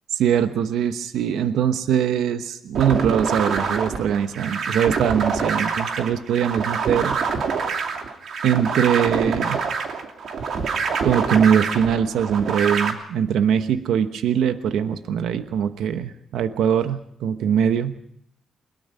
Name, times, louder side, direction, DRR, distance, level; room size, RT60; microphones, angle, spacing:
voice 1, 0.1-7.2 8.4-9.7 11.0-17.9, right 8 dB, 90° right, 9 dB, 1.1 m, -22 dB
sound 1, 2.7-12.9, right 5 dB, 65° right, 2.8 m, -26 dB
22.0 x 21.5 x 5.5 m, 0.67 s
cardioid pair, 110°, 0 cm